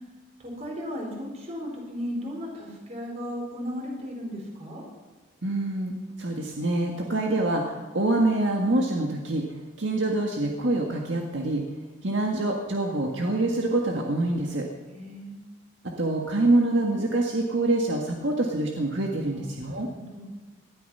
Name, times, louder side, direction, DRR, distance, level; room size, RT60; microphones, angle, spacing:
voice 1, 0.4-4.8 14.9-15.4 19.3-20.3, equal, 35° right, -1 dB, 4.6 m, -36 dB
voice 2, 5.4-5.9 6.2-9.4 9.8-11.6 12.0-14.7 16.0-19.9, right 2 dB, 70° right, 1 dB, 1.8 m, -25 dB
19.5 x 12.5 x 5.6 m, 1.2 s
head